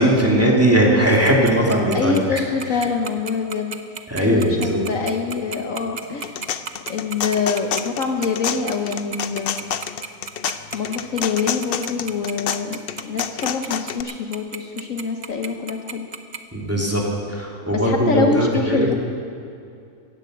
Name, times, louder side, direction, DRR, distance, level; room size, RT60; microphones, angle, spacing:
voice 1, 0.0-2.4 4.1-4.8 16.5-18.9, right 1 dB, 10° right, -2 dB, 2.4 m, -19 dB
Tick-tock, 1.2-16.4, right 6 dB, 45° right, 0.6 m, -32 dB
voice 2, 1.9-3.8 4.2-6.6 6.9-9.7 10.7-16.1 17.7-18.9, left 5 dB, 55° left, 3 dB, 1.2 m, -25 dB
sound 1, 6.0-14.0, left 9 dB, 90° left, 0.5 m, -28 dB
16.0 x 11.0 x 7.8 m, 2.5 s
omnidirectional pair, 1.7 m